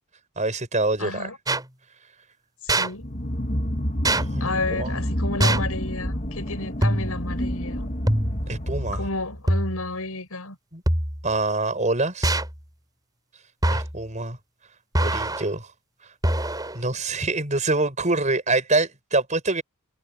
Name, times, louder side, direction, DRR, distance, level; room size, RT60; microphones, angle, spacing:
voice 1, 0.4-1.3 4.1-5.0 8.5-9.1 10.7-10.8 11.2-12.4 13.7-14.4 15.0-15.7 16.0-16.1 16.7-19.6, right 2 dB, 35° right, 6.6 m, -25 dB
voice 2, 1.0-1.4 2.6-3.2 4.4-7.9 8.9-10.6, left 3 dB, 80° left, 5.9 m, -31 dB
sound 1, 1.5-1.7 2.7-2.9 4.0-4.2 5.4-5.8 6.8-7.2 8.1-8.5 9.5-9.9 10.9-11.3 12.2-12.6 13.6-14.0 15.0-15.5 16.2-16.8, right 1 dB, 15° right, 5.2 m, -23 dB
sound 2, 3.0-9.5, equal, 35° left, 2.3 m, -29 dB
head